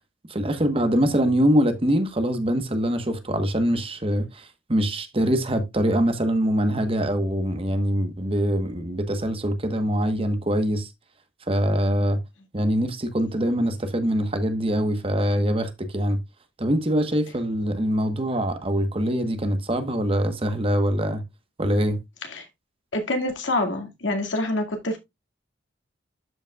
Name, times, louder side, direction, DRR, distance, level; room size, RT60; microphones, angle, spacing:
voice 1, 0.3-10.9 11.5-12.2 12.5-16.2 16.6-21.2 21.6-22.0, equal, 30° right, 1.2 m, -23 dB
voice 2, 22.9-25.0, left 1 dB, 85° left, 2.1 m, -26 dB
12.5 x 5.3 x 2.4 m
head